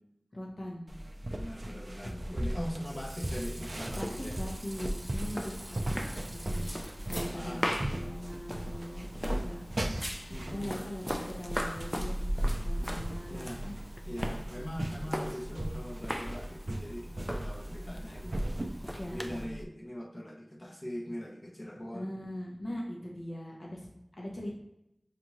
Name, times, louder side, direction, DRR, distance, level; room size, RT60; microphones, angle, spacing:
voice 1, 0.3-1.0 1.6-2.5 4.0-10.0 10.5-12.2 12.6-13.7 14.3-14.7 18.8-19.5 21.9-24.5, equal, 75° left, -2 dB, 0.9 m, -41 dB
sound 1, 0.9-19.6, right 1 dB, 60° right, 0.4 m, -38 dB
voice 2, 1.2-4.4 7.3-7.7 10.3-10.8 13.3-13.6 14.0-18.8 19.1-22.1, equal, 40° left, 1 dB, 0.8 m, -41 dB
Water / Sink (filling or washing), 2.7-7.6, right 1 dB, 35° right, 0.7 m, -49 dB
sound 2, 3.9-19.4, equal, 10° left, 0.4 m, -38 dB
5.9 x 2.5 x 2.9 m, 0.84 s
wide cardioid pair, 45°, 0 cm